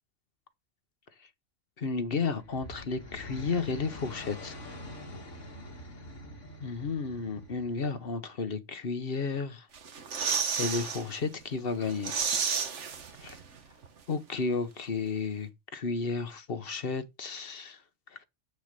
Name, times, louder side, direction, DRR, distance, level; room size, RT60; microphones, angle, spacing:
voice 1, 1.8-4.6 6.6-9.7 10.6-12.1 13.2-13.4 14.1-17.8, left 4 dB, 50° left, 1.2 m, -32 dB
sound 1, 2.3-8.2, left 1 dB, 80° left, 2.3 m, -45 dB
sound 2, 9.7-11.0 11.4-11.5 11.8-13.6 13.8-13.9, right 6 dB, 75° right, 1.5 m, -31 dB
8.3 x 6.5 x 6.7 m
omnidirectional pair, 1.2 m